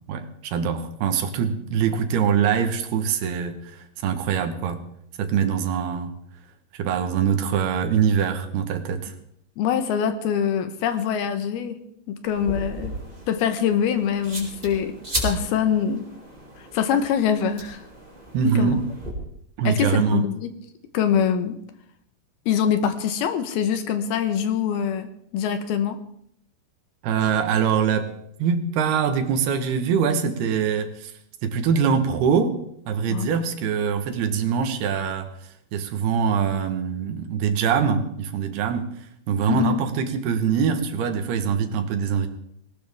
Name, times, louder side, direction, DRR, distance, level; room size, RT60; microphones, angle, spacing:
voice 1, 0.1-4.8 5.2-6.1 6.8-9.1 18.3-18.8 19.6-20.2 27.0-28.1 28.4-31.1 31.4-32.6 32.9-35.3 35.7-38.9 39.3-42.3, right 7 dB, 75° right, 7 dB, 3.1 m, -23 dB
voice 2, 9.6-11.8 12.1-12.9 13.3-14.9 15.2-16.0 16.7-17.8 18.6-18.7 19.6-20.5 20.9-21.6 22.5-26.0 33.1-33.4 39.5-39.8, left 8 dB, 75° left, 9 dB, 2.8 m, -24 dB
sound 1, 12.3-19.1, right 1 dB, 10° right, 4.2 m, -35 dB
19.5 x 19.0 x 3.6 m, 0.70 s
omnidirectional pair, 4.7 m